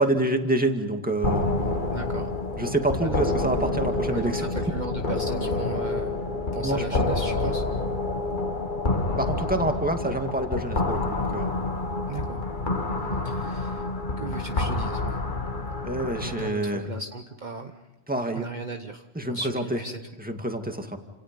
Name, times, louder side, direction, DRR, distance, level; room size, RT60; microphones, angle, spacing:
voice 1, 0.0-1.4 2.6-4.5 6.6-6.8 9.1-11.6 15.8-16.9 18.1-18.5 19.2-19.8 20.2-21.0, right 1 dB, 5° right, 4 dB, 2.1 m, -27 dB
sound 1, 1.2-16.5, left 2 dB, 45° left, 1.7 m, -28 dB
voice 2, 1.9-2.3 3.0-3.3 4.1-6.1 6.5-7.6 12.1-12.4 13.2-13.9 14.2-15.2 16.2-17.8 18.3-20.0, right 3 dB, 40° right, 5 dB, 1.2 m, -36 dB
29.5 x 27.5 x 5.3 m, 1.0 s
omnidirectional pair, 1.2 m